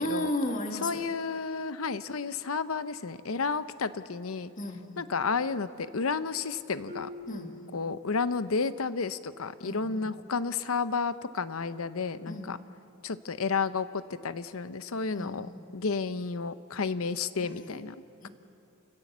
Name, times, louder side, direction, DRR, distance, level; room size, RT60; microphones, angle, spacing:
voice 1, 0.0-1.1 4.6-5.1 7.3-7.8 9.6-10.1 12.3-12.6 15.1-15.6 17.4-17.8 18.2-18.3, left 1 dB, 40° left, 4 dB, 1.9 m, -35 dB
voice 2, 0.8-4.5 5.0-7.1 7.7-12.6 13.0-15.5 15.7-17.9, left 4 dB, 75° left, 14 dB, 0.7 m, -31 dB
Marimba xylophone, 6.9-8.6, left 2 dB, 40° right, 1.8 m, -46 dB
29.0 x 16.5 x 7.3 m, 2.8 s
head